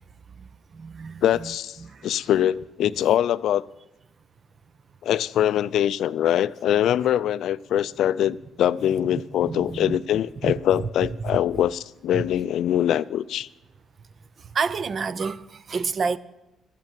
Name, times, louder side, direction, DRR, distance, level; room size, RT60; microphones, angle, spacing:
voice 1, 0.4-1.5 1.8-2.1 9.4-10.0 10.4-10.5 11.2-11.4 12.1-12.2 14.4-16.2, right 5 dB, 45° right, 0.6 m, -29 dB
voice 2, 1.2-1.8 2.0-3.6 5.0-13.5, left 11 dB, 75° left, 0.4 m, -23 dB
13.0 x 8.3 x 9.0 m
cardioid pair, 90°, 0 cm